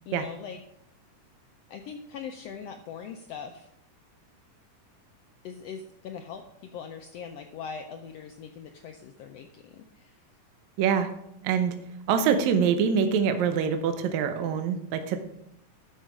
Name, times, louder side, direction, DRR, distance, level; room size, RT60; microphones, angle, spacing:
voice 1, 0.1-0.6 1.7-3.7 5.4-10.2, left 6 dB, 90° left, 5 dB, 1.4 m, -41 dB
voice 2, 10.8-11.1 11.4-11.7 12.1-15.2, right 7 dB, 75° right, 7 dB, 2.0 m, -24 dB
12.0 x 5.6 x 5.0 m, 0.78 s
omnidirectional pair, 3.6 m